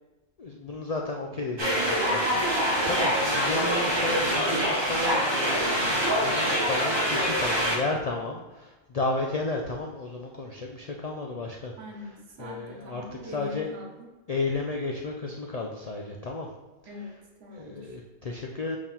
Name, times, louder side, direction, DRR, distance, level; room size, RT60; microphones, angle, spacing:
voice 1, 0.4-11.7 12.4-13.7 14.3-16.5 17.5-18.8, left 3 dB, 85° left, 0 dB, 0.3 m, -33 dB
sound 1, 1.6-7.8, equal, 20° right, 0.9 m, -25 dB
voice 2, 11.8-14.1 16.9-18.0, left 1 dB, 65° right, 1 dB, 1.3 m, -43 dB
4.9 x 3.6 x 5.4 m, 1.1 s
omnidirectional pair, 1.4 m